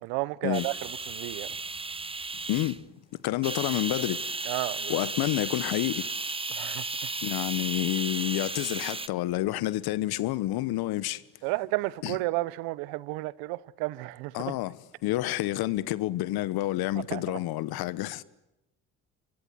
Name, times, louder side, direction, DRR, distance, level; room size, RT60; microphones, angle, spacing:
voice 1, 0.0-1.5 4.5-5.0 6.5-6.8 11.4-14.5 17.1-17.4, right 21 dB, 80° right, 0.9 m, -32 dB
sound 1, 0.5-2.8 3.4-9.1, right 3 dB, 15° right, 1.0 m, -34 dB
voice 2, 3.2-4.2 4.9-6.1 7.2-11.2 12.0-12.2 14.3-14.7 15.0-18.2, left 16 dB, 70° left, 1.3 m, -29 dB
26.0 x 24.0 x 9.0 m
supercardioid pair, 65°, 38 cm